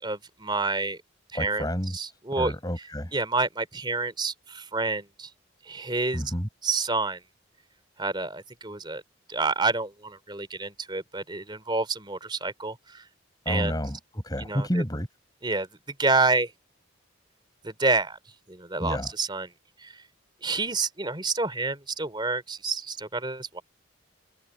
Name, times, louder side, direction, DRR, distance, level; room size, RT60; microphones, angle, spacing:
voice 1, 0.0-1.0 1.3-1.7 1.9-2.5 3.1-5.3 5.6-6.2 6.6-7.2 8.0-9.0 9.3-13.0 13.5-13.8 14.4-14.8 15.4-15.7 16.0-16.5 17.6-18.2 18.5-19.5 19.8-19.9 20.4-23.6, right 3 dB, 25° right, 3.4 m, -28 dB
voice 2, 1.3-2.0 2.4-3.1 6.1-6.5 13.5-15.1 18.8-19.1, equal, 20° left, 7.3 m, -30 dB
head